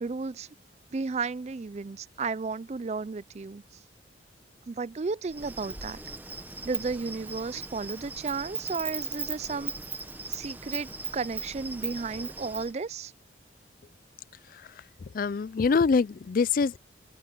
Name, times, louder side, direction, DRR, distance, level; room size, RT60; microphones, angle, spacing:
voice 1, 0.0-0.5 0.9-3.6 4.7-6.0 6.6-9.7 10.3-13.1, right 4 dB, 35° right, 0.4 m, -33 dB
Insect, 5.3-12.7, right 4 dB, 10° right, 0.9 m, -38 dB
voice 2, 15.1-16.8, left 5 dB, 45° left, 0.3 m, -24 dB
open air
head